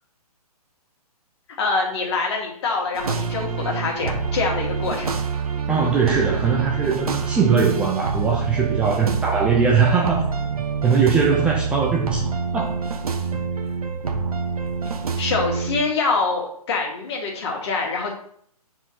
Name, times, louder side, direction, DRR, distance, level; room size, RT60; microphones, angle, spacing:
voice 1, 1.6-5.1 15.2-18.1, left 4 dB, 45° left, -1 dB, 2.2 m, -25 dB
sound 1, 2.9-15.8, right 5 dB, 65° right, 1.0 m, -26 dB
voice 2, 5.7-10.2 10.8-12.7, right 5 dB, 5° right, -2 dB, 0.3 m, -20 dB
7.3 x 4.5 x 4.2 m, 0.64 s
figure-of-eight pair, 135°, 20 cm